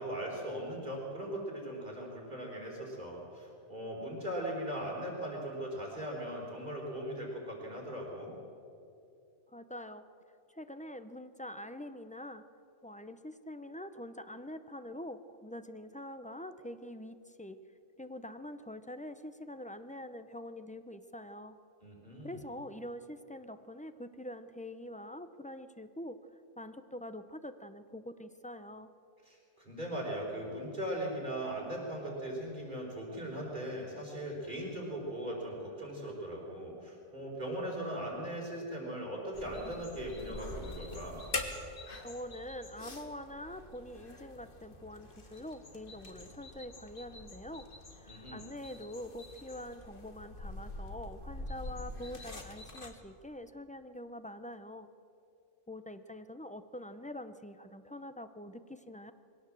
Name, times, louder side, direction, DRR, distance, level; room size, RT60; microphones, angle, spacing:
voice 1, 0.0-8.3 21.8-22.4 29.3-41.2 48.1-48.4, right 1 dB, 40° right, -3 dB, 4.9 m, -39 dB
voice 2, 9.5-10.1 10.5-12.5 12.8-17.6 18.0-21.6 22.2-26.2 26.6-28.9 42.0-47.7 48.0-54.9 55.7-59.1, left 1 dB, 10° left, 10 dB, 0.4 m, -45 dB
sound 1, 39.3-52.9, left 2 dB, 45° left, 1.9 m, -45 dB
22.0 x 17.0 x 7.6 m, 2.6 s
omnidirectional pair, 1.3 m